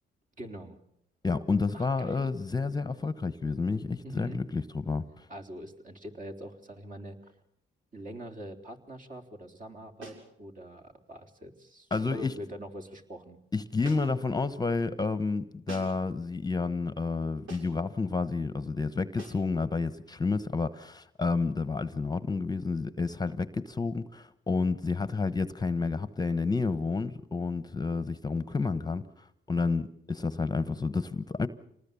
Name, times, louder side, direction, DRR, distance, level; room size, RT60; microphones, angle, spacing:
voice 1, 0.4-0.8 1.7-2.3 4.0-4.4 5.3-7.3 7.9-13.4, equal, 40° right, 3.8 m, -43 dB
voice 2, 1.2-5.3 11.9-12.3 13.5-29.0 29.5-31.5, left 4 dB, 20° left, 1.0 m, -30 dB
sound 1, 10.0-10.3 11.9-12.2 13.8-14.3 15.7-16.1 17.5-17.8 19.2-19.5, right 2 dB, 80° right, 7.0 m, -46 dB
27.5 x 19.5 x 7.0 m
cardioid pair, 90°, 20 cm